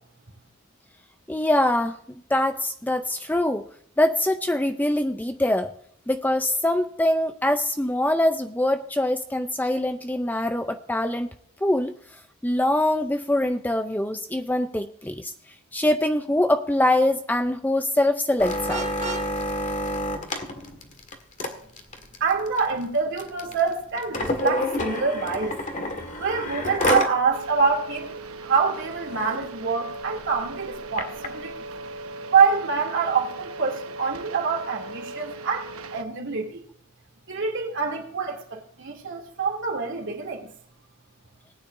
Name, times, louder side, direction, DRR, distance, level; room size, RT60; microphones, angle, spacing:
voice 1, 1.3-2.0 2.3-3.7 4.0-5.7 6.1-11.3 11.6-11.9 12.4-15.3 15.7-18.9, left 1 dB, 10° left, 0.5 m, -23 dB
sound 1, 18.4-27.2 27.6-27.7 28.0-28.3 28.7-28.8 29.1-29.4 30.0-31.3 32.0-32.1, left 1 dB, 35° left, 1.8 m, -29 dB
Vehicle horn car horn honking, 18.7-19.3, right 3 dB, 35° right, 2.0 m, -33 dB
voice 2, 22.2-25.6 26.2-31.5 32.3-36.6 37.3-40.5, right 5 dB, 60° right, 2.8 m, -25 dB
sound 2, 27.3-36.0, right 2 dB, 90° right, 1.1 m, -38 dB
19.0 x 9.7 x 2.6 m
head